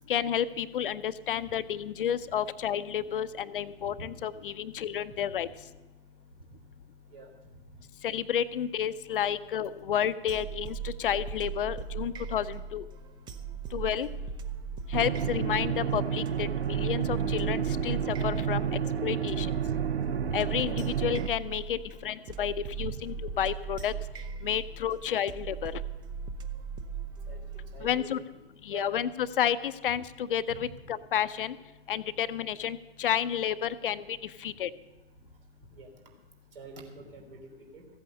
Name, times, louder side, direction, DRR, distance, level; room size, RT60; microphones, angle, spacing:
voice 1, 0.1-5.5 8.0-12.8 13.7-14.1 14.9-18.7 19.0-19.5 20.3-23.9 24.4-25.7 27.8-28.2 28.6-31.6 31.9-34.7, left 9 dB, 60° left, 14 dB, 0.6 m, -31 dB
sound 1, 10.3-28.0, right 6 dB, 15° right, 0.5 m, -39 dB
sound 2, 14.9-21.3, right 8 dB, 80° right, 0.7 m, -30 dB
voice 2, 27.3-28.2 28.7-28.9 30.5-30.6 35.7-35.9 36.5-37.9, right 3 dB, 60° right, 3 dB, 3.4 m, -45 dB
15.0 x 8.5 x 6.7 m, 1.1 s
figure-of-eight pair, 110°, 31 cm